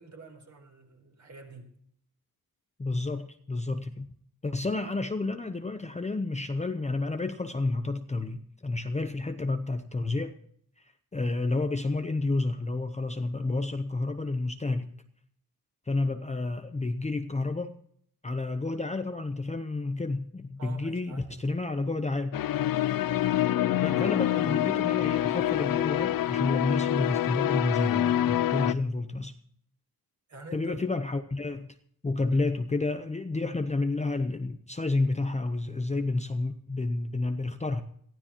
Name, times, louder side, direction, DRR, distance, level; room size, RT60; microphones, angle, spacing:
voice 1, 0.0-1.7 20.6-21.4 30.3-30.7 32.3-32.4, right 3 dB, 50° right, 3 dB, 4.4 m, -47 dB
voice 2, 2.8-4.1 4.4-10.3 10.8-14.9 15.9-17.7 18.2-22.4 23.7-29.3 30.5-31.8 32.0-37.8, left 2 dB, 20° left, 8 dB, 0.7 m, -30 dB
sound 1, 22.3-28.7, left 12 dB, 65° left, 0.5 m, -26 dB
22.5 x 15.0 x 2.9 m, 0.64 s
wide cardioid pair, 155°, 37 cm